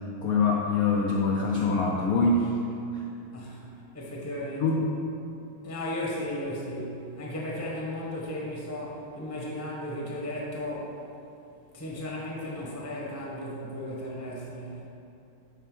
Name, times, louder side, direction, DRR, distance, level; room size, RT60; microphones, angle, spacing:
voice 1, 0.2-2.5 2.9-3.0 4.6-4.8, left 3 dB, 80° left, -2 dB, 0.8 m, -24 dB
voice 2, 3.3-3.6 3.9-4.8 5.6-11.0 11.7-14.9, left 1 dB, 10° left, -4 dB, 0.7 m, -35 dB
6.6 x 4.3 x 6.1 m, 2.7 s
omnidirectional pair, 2.2 m